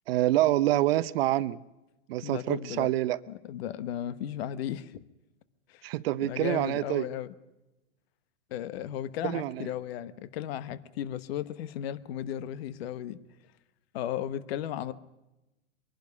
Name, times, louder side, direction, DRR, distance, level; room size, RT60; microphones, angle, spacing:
voice 1, 0.1-1.6 2.1-3.2 5.8-7.0 9.2-9.7, right 15 dB, 55° right, 0.7 m, -26 dB
voice 2, 2.2-2.9 3.3-5.0 5.7-5.9 6.2-7.3 8.5-13.2 13.9-14.9, left 11 dB, 55° left, 1.1 m, -35 dB
23.0 x 12.0 x 9.7 m
hypercardioid pair, 125°, 37 cm